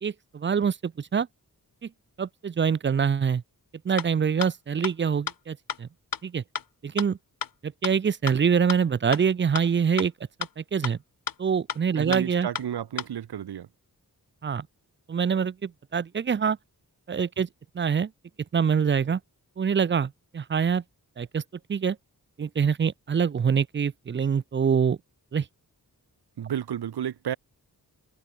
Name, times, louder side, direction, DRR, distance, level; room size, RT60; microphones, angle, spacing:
voice 1, 0.0-1.3 1.8-1.9 2.2-3.4 3.8-5.9 6.2-6.4 6.8-7.2 7.6-10.1 10.6-11.0 11.4-12.5 14.4-14.7 15.1-16.6 17.1-17.5 17.7-18.1 18.5-19.2 19.6-20.8 21.2-21.4 21.7-22.0 22.4-25.0 25.3-25.5, right 6 dB, 30° right, 0.4 m, -25 dB
sound 1, 4.0-4.1 4.4-4.5 4.8-4.9 5.3-5.4 5.7-5.8 6.1-6.2 6.5-6.6 7.0-7.1 7.4-7.5 7.8-7.9 8.3-8.4 8.7-8.8 9.1-9.2 9.6-9.7 10.0-10.1 10.4-10.5 10.8-10.9 11.3-11.4 11.7-11.8 12.1-12.2 12.5-12.6 13.0-13.1, left 7 dB, 60° left, 1.1 m, -30 dB
voice 2, 11.9-13.7 26.4-27.4, right 9 dB, 85° right, 0.9 m, -32 dB
cardioid pair, 65°, 38 cm